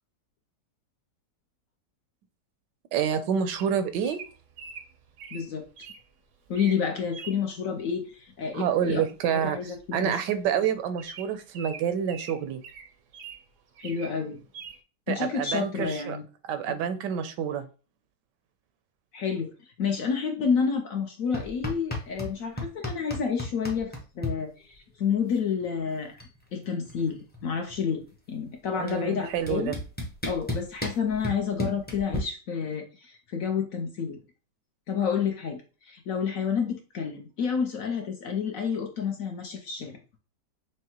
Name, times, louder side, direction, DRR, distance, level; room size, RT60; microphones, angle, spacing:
voice 1, 2.9-4.2 8.5-12.6 15.1-16.2 16.4-17.7 28.8-29.8, right 8 dB, 80° right, 10 dB, 1.2 m, -28 dB
Bird vocalization bird call bird song, 3.5-6.0 6.5-6.8 7.1-7.4 8.9-9.1 9.4-9.5 9.7-9.9 10.4-10.5 11.0-13.4 13.8-14.1 14.5-14.8, right 5 dB, 65° right, 0.8 m, -43 dB
voice 2, 5.3-5.9 6.5-9.0 9.3-10.2 13.8-14.4 15.1-16.2 19.1-19.5 19.8-26.2 26.5-29.7 30.3-34.2 34.9-40.0, left 6 dB, 65° left, 3 dB, 0.9 m, -29 dB
sound 1, 21.3-22.3 22.6-24.3 25.6-25.7 25.9-26.4 26.6-28.0 28.9-29.0 29.5-32.2, left 1 dB, 10° left, 0.4 m, -33 dB
6.2 x 2.1 x 2.9 m, 0.35 s
omnidirectional pair, 1.9 m